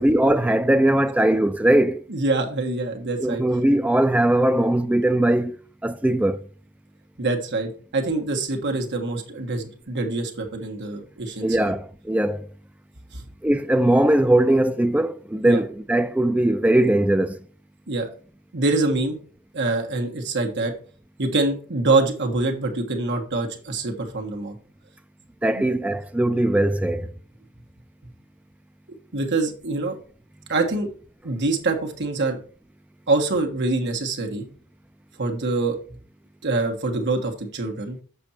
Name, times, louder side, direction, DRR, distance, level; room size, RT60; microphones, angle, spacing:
voice 1, 0.0-2.0 3.2-6.4 11.4-12.5 13.4-17.4 25.4-27.1, right 1 dB, 5° right, 0.4 m, -20 dB
voice 2, 2.1-3.4 7.2-11.7 13.1-13.2 15.4-15.6 17.9-18.1 18.5-19.2 19.5-20.7 21.2-24.6 25.5-25.6 29.1-30.0 30.5-30.9 31.2-32.4 33.1-34.4 35.2-35.8 36.4-38.0, right 3 dB, 55° right, 1.4 m, -25 dB
6.9 x 5.1 x 4.3 m
head